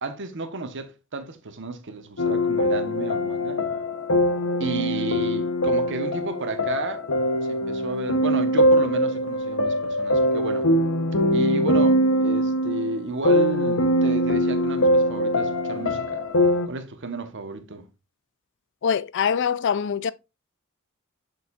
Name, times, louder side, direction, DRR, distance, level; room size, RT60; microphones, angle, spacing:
voice 1, 0.0-3.6 4.6-7.0 7.5-10.7 11.3-16.2 16.6-17.8, right 3 dB, 55° right, 1.1 m, -32 dB
sound 1, 2.2-16.7, equal, 70° left, 1.0 m, -22 dB
voice 2, 18.8-20.1, left 7 dB, 55° left, 0.4 m, -23 dB
7.0 x 6.6 x 2.4 m
head